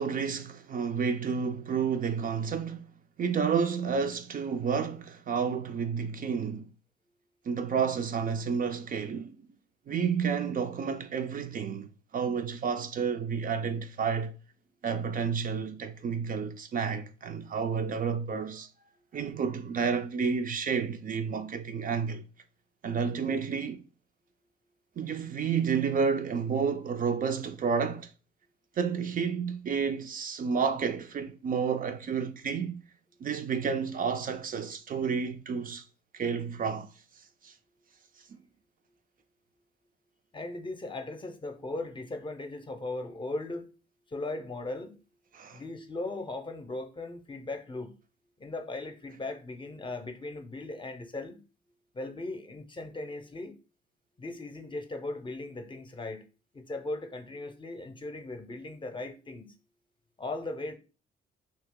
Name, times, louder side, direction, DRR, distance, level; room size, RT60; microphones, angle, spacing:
voice 1, 0.0-2.9 3.2-6.7 7.5-9.4 9.9-14.3 14.8-18.7 19.1-22.2 22.8-23.8 25.0-28.1 28.8-32.8 33.2-35.8 36.1-36.9 37.4-37.5 45.3-45.6, right 6 dB, 45° right, 0.4 m, -30 dB
voice 2, 40.3-43.7 44.1-45.0 45.5-47.9 48.4-51.4 51.9-53.6 54.2-56.2 56.5-59.5 60.2-60.7, left 2 dB, 25° left, 0.6 m, -38 dB
2.8 x 2.8 x 3.6 m
cardioid pair, 90°, 20 cm